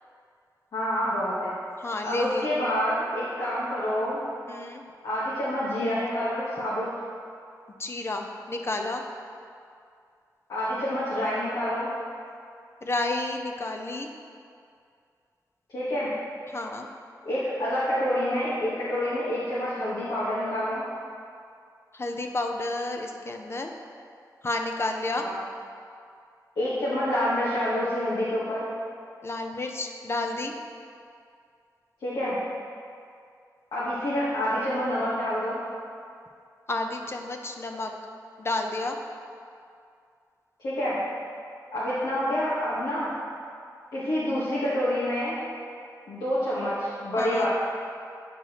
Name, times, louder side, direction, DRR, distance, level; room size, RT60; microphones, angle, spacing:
voice 1, 0.7-1.5 2.0-4.2 5.0-6.9 10.5-11.9 15.7-16.1 17.2-20.8 25.2-25.3 26.6-28.6 32.0-32.4 33.7-35.6 40.6-41.0 41.7-43.1 43.9-45.4 46.1-47.5, equal, 85° left, -10 dB, 1.2 m, -27 dB
voice 2, 1.8-2.5 4.5-4.8 7.8-9.0 12.8-14.1 16.5-16.9 21.9-23.7 24.4-25.3 29.2-30.5 36.7-37.9 38.4-39.0 47.2-47.5, left 2 dB, 35° left, 3 dB, 0.6 m, -31 dB
8.4 x 4.6 x 2.9 m, 2.3 s
wide cardioid pair, 70°, 7 cm